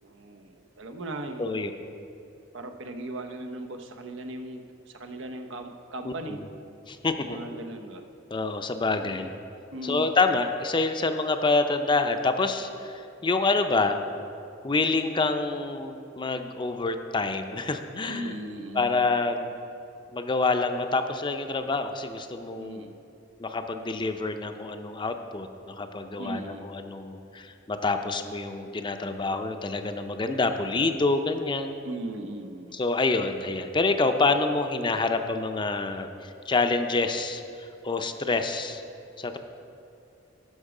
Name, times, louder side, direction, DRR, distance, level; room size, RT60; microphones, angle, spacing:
voice 1, 0.0-1.6 2.5-4.6 4.9-6.4 7.2-8.0 8.9-9.3 9.7-10.1 18.1-19.1 22.6-22.9 26.2-26.7 31.8-32.8, right 1 dB, 90° right, 5 dB, 0.8 m, -38 dB
voice 2, 1.4-1.7 6.0-6.5 6.9-7.4 8.3-9.3 9.8-14.0 14.6-18.4 18.7-19.5 20.1-22.9 23.4-31.8 32.7-38.8 39.2-39.4, left 3 dB, 25° left, 7 dB, 0.5 m, -27 dB
12.0 x 6.1 x 4.9 m, 2.6 s
head